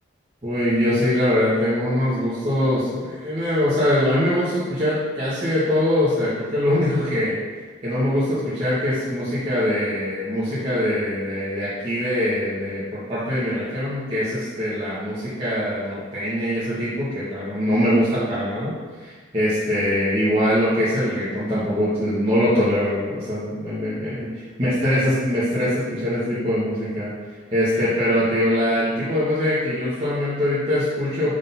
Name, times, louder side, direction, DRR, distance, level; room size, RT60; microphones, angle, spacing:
voice 1, 0.4-7.4 7.8-24.3 24.6-27.1 27.5-31.4, left 1 dB, 30° right, -12 dB, 1.4 m, -22 dB
5.0 x 3.9 x 5.6 m, 1.4 s
head